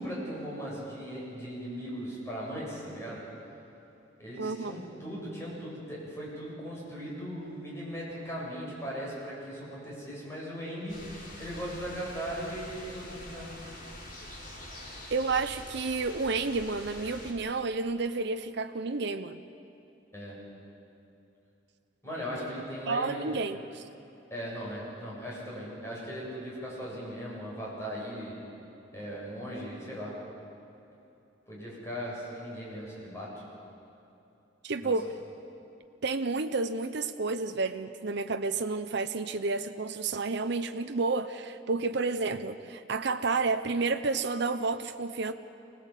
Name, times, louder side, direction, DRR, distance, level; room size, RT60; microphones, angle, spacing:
voice 1, 0.0-3.2 4.2-13.5 20.1-20.4 22.0-23.4 24.3-28.4 28.9-30.1 31.5-33.4 34.8-34.9, equal, 15° left, -5 dB, 8.0 m, -38 dB
voice 2, 4.4-4.8 15.1-19.4 22.9-23.8 34.6-35.1 36.0-45.3, right 3 dB, 65° right, 8 dB, 0.8 m, -30 dB
sound 1, 10.9-17.3, left 1 dB, 50° left, 4.9 m, -45 dB
25.5 x 18.5 x 8.3 m, 2.9 s
head